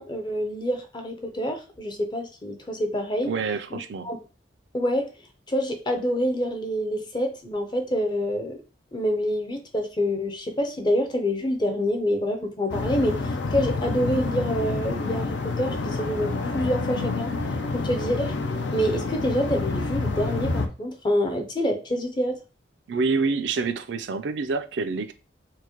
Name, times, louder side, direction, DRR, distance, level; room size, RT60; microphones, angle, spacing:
voice 1, 0.0-3.3 3.7-4.2 4.7-5.1 5.5-8.6 8.9-17.3 17.7-18.4 18.7-22.4, equal, 25° left, 0.5 m, -27 dB
voice 2, 3.3-4.1 22.9-25.1, right 4 dB, 75° right, 0.4 m, -27 dB
sound 1, 12.7-20.7, left 3 dB, 75° left, 0.5 m, -28 dB
4.5 x 2.2 x 2.9 m
head